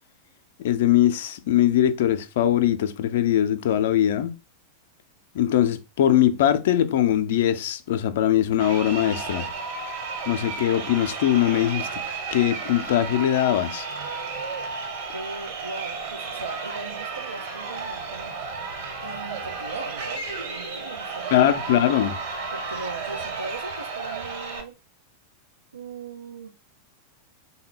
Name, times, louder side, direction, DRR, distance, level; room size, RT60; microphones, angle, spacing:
voice 1, 0.6-4.3 5.3-9.5 10.3-12.0 12.3-13.9 21.3-22.2, left 11 dB, 55° left, 0.4 m, -21 dB
Crowd, 8.5-24.6, right 4 dB, 50° right, 1.1 m, -33 dB
voice 2, 15.1-18.3 19.0-21.3 22.5-24.8 25.7-26.5, right 3 dB, 75° right, 0.4 m, -38 dB
3.8 x 2.2 x 3.6 m
figure-of-eight pair, 90°, 0 cm